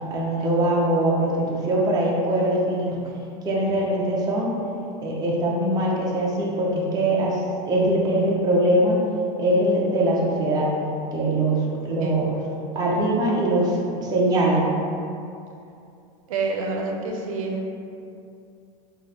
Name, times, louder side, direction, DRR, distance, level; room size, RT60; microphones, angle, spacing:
voice 1, 0.1-3.0 3.4-4.5 5.0-7.4 7.7-9.0 9.4-10.7 11.1-12.3 12.7-14.7, right 1 dB, 20° right, -4 dB, 0.7 m, -22 dB
voice 2, 16.3-17.7, right 3 dB, 90° right, 1 dB, 0.6 m, -28 dB
3.1 x 2.5 x 4.1 m, 2.5 s
supercardioid pair, 135°, 17 cm